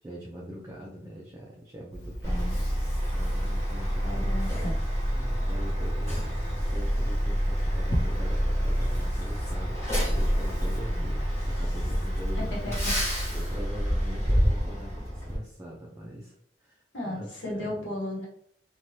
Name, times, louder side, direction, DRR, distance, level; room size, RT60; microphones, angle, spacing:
voice 1, 0.0-4.4 5.1-12.8 13.3-18.0, equal, 15° right, -3 dB, 0.4 m, -42 dB
sound 1, 1.9-13.1, equal, 60° left, 0.8 m, -37 dB
voice 2, 2.2-2.6 4.0-4.7 12.4-12.9 16.9-18.3, left 1 dB, 85° left, -4 dB, 1.0 m, -35 dB
Truck, 2.2-15.4, equal, 15° left, 1.3 m, -28 dB
3.1 x 2.3 x 2.7 m, 0.67 s
head